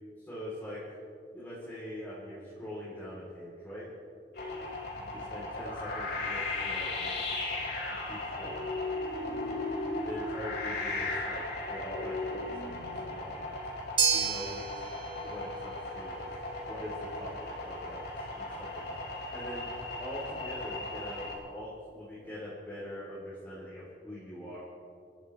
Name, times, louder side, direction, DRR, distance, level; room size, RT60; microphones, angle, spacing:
voice 1, 0.2-0.8 1.3-3.9 5.1-7.2 8.1-8.7 10.0-11.4 11.7-13.5 14.1-14.9 15.2-16.1 16.7-19.0 19.3-19.7 20.0-24.6, equal, 10° left, -8 dB, 3.7 m, -43 dB
sound 1, 4.3-21.3, left 2 dB, 60° left, 4.2 m, -36 dB
sound 2, 14.0-22.3, right 6 dB, 25° right, 2.1 m, -36 dB
28.0 x 14.5 x 3.4 m, 2.6 s
head